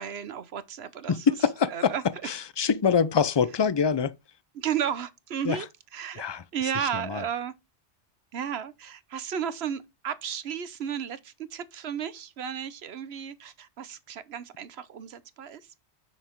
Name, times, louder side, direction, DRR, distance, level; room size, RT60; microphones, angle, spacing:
voice 1, 0.0-1.3 1.6-2.3 4.5-5.7 5.9-6.2 6.5-7.5 8.3-15.7, right 8 dB, 65° right, 1.0 m, -33 dB
voice 2, 1.1-1.9 2.3-4.1 5.4-5.6 6.2-6.4 6.8-7.2, left 6 dB, 45° left, 0.3 m, -25 dB
7.0 x 6.4 x 4.5 m
omnidirectional pair, 1.2 m